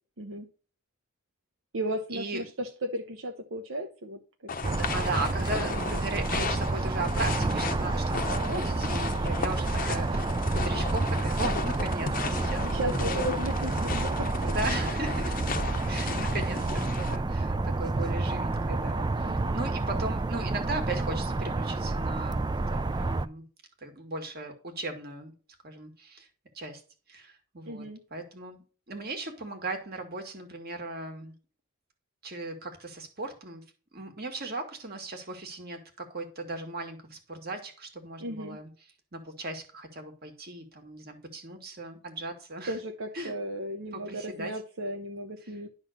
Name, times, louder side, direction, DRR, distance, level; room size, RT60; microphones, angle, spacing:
voice 1, 0.2-0.5 1.7-4.2 4.6-4.8 5.7-5.9 12.7-14.5 19.2-19.6 27.7-28.0 38.2-38.6 42.7-45.7, right 1 dB, 70° right, 4 dB, 0.9 m, -35 dB
sound 1, 4.5-17.2, left 4 dB, 40° left, 0.8 m, -35 dB
sound 2, 4.6-23.3, right 2 dB, 20° right, 0.3 m, -29 dB
voice 2, 4.7-13.1 14.4-15.6 15.9-23.4 23.8-25.3 25.6-26.3 26.5-26.8 27.1-27.8 28.1-31.3 32.2-33.6 33.9-38.7 39.1-42.8 43.1-43.3 43.9-44.5, right 2 dB, 45° right, 5 dB, 1.9 m, -37 dB
11.5 x 3.9 x 6.5 m, 0.37 s
head